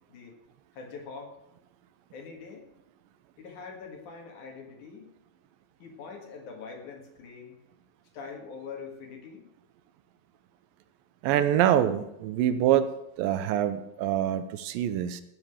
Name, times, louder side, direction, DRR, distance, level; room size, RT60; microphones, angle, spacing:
voice 1, 0.7-1.4 2.1-2.7 3.4-5.1 5.8-7.6 8.1-9.5, left 5 dB, 60° left, 2 dB, 3.1 m, -43 dB
voice 2, 11.2-12.9 13.2-15.2, right 11 dB, 80° right, 11 dB, 2.3 m, -25 dB
15.5 x 6.0 x 7.1 m, 0.83 s
omnidirectional pair, 4.2 m